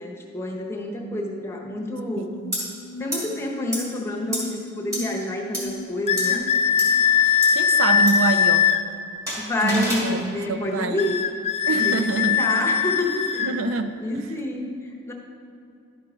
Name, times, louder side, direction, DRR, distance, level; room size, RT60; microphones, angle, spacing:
voice 1, 0.0-2.3 3.0-6.5 9.4-11.2 11.8-13.6 14.0-15.1, left 1 dB, 10° left, -1 dB, 1.0 m, -28 dB
sound 1, 1.5-7.2, left 2 dB, 85° left, 0.5 m, -39 dB
voice 2, 2.2-2.7 7.3-8.7 9.6-11.0 11.7-12.4 13.4-14.3, right 3 dB, 75° right, 9 dB, 0.5 m, -26 dB
sound 2, 2.5-2.6 3.1-3.2 3.7-3.8 4.3-4.4 4.9-5.0 5.5-5.6 6.2-6.3 6.8-6.9 7.4-7.5 8.1-8.2 9.3-10.1, equal, 15° right, 2.2 m, -28 dB
sound 3, 6.1-8.8 11.0-13.5, left 7 dB, 30° left, 0.4 m, -20 dB
11.5 x 4.6 x 5.1 m, 2.6 s
head